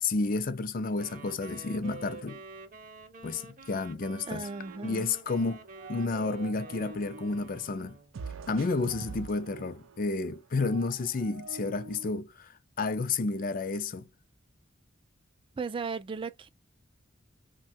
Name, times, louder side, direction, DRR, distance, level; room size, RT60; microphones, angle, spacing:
voice 1, 0.0-2.4 3.2-4.5 4.8-8.0 8.5-14.1, left 3 dB, 45° left, 0.4 m, -31 dB
Wind instrument woodwind instrument, 0.9-8.1, right 3 dB, 40° right, 0.7 m, -48 dB
voice 2, 4.3-5.1 15.6-16.5, right 4 dB, 25° right, 0.3 m, -36 dB
sound 1, 4.7-5.4 5.7-7.3 8.1-12.2, right 4 dB, 90° right, 0.5 m, -45 dB
3.0 x 2.2 x 2.6 m
head